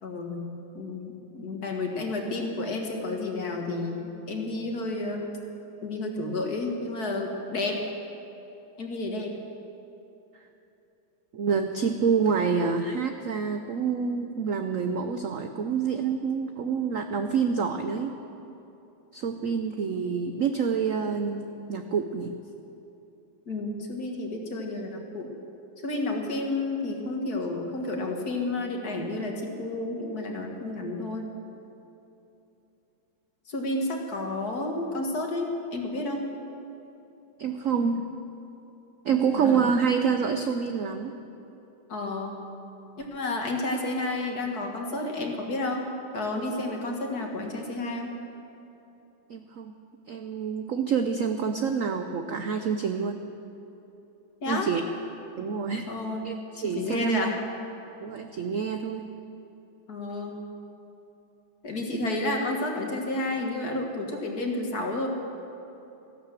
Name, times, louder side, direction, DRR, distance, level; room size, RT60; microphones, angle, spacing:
voice 1, 0.0-5.4 5.8-7.8 8.8-9.4 23.5-25.3 25.8-31.3 33.5-36.2 39.4-39.7 41.9-42.4 43.0-45.9 46.1-48.1 54.4-54.7 55.9-56.3 56.6-57.4 59.9-60.4 61.6-65.1, left 2 dB, 50° left, 1 dB, 2.1 m, -31 dB
voice 2, 11.3-18.2 19.1-22.3 37.4-38.0 39.0-41.1 49.3-49.7 50.1-53.2 54.5-54.8 55.4-55.9 56.2-57.3 58.0-59.1, right 6 dB, 70° right, 6 dB, 0.7 m, -27 dB
15.5 x 11.5 x 7.5 m, 2.9 s
omnidirectional pair, 2.2 m